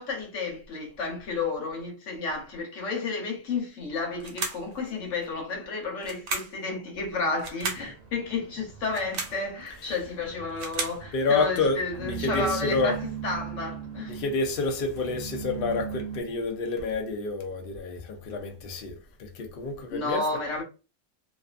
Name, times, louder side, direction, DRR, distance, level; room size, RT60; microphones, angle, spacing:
voice 1, 0.0-14.2 19.9-20.6, left 3 dB, 80° left, 1.2 m, -32 dB
sound 1, 4.2-4.7 6.0-6.6 7.4-7.9 8.8-9.4 10.3-11.0, right 4 dB, 75° right, 1.0 m, -33 dB
sound 2, 7.6-16.2, right 8 dB, 40° right, 0.7 m, -39 dB
voice 2, 11.1-13.0 14.1-18.9 19.2-20.2, left 3 dB, 60° left, 0.7 m, -28 dB
2.5 x 2.4 x 2.4 m
omnidirectional pair, 1.3 m